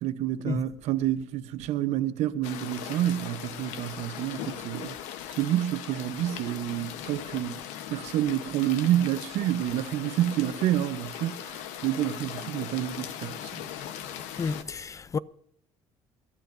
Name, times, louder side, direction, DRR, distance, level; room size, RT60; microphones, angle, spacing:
voice 1, 0.0-4.9 5.4-7.6 7.9-13.5, right 12 dB, 75° right, 1.0 m, -28 dB
sound 1, 2.4-14.6, left 10 dB, 85° left, 1.1 m, -39 dB
voice 2, 14.4-15.2, left 5 dB, 25° left, 0.5 m, -31 dB
26.5 x 12.5 x 2.7 m
cardioid pair, 110°, 12 cm